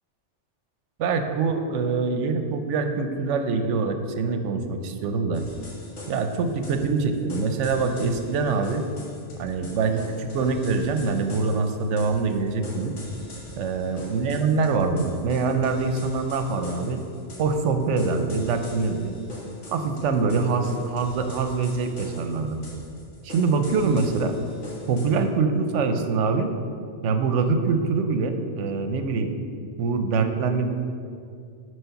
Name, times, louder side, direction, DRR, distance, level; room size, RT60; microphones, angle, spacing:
voice 1, 1.0-5.4 6.1-8.8 9.4-12.9 13.6-17.0 17.4-19.2 19.7-22.6 23.2-24.3 24.9-26.5 27.0-29.3 29.8-30.7, right 4 dB, 85° right, 7 dB, 1.0 m, -24 dB
sound 1, 5.3-25.2, left 1 dB, 85° left, 1.7 m, -43 dB
6.4 x 4.7 x 5.7 m, 2.4 s
omnidirectional pair, 1.2 m